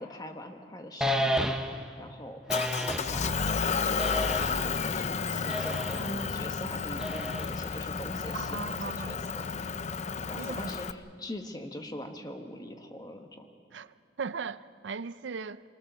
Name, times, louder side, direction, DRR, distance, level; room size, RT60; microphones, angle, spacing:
voice 1, 0.0-2.4 2.8-8.8 9.0-9.5 10.3-13.4, left 1 dB, 25° left, 1.5 m, -42 dB
sound 1, 1.0-1.9 2.5-3.2 4.0-4.7 5.5-6.1 7.0-7.7, equal, 5° right, 1.0 m, -31 dB
Motor vehicle (road) / Engine, 2.5-10.9, left 5 dB, 40° left, 0.5 m, -32 dB
voice 2, 8.3-9.2 10.4-10.7 13.7-15.6, right 5 dB, 85° right, 0.5 m, -38 dB
26.5 x 19.0 x 6.9 m
head